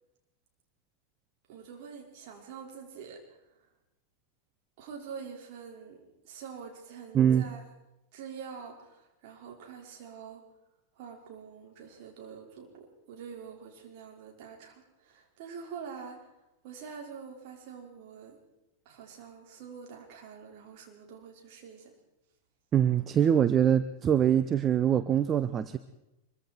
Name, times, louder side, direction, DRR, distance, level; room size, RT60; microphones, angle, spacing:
voice 1, 1.5-3.4 4.8-7.6 8.1-10.4 10.9-16.3 16.6-18.4 18.9-21.9, right 6 dB, 45° right, 0 dB, 5.2 m, -46 dB
voice 2, 7.1-7.5 22.7-25.8, right 9 dB, 25° right, 12 dB, 0.8 m, -24 dB
24.5 x 23.5 x 4.6 m, 0.93 s
figure-of-eight pair, 90°, 0 cm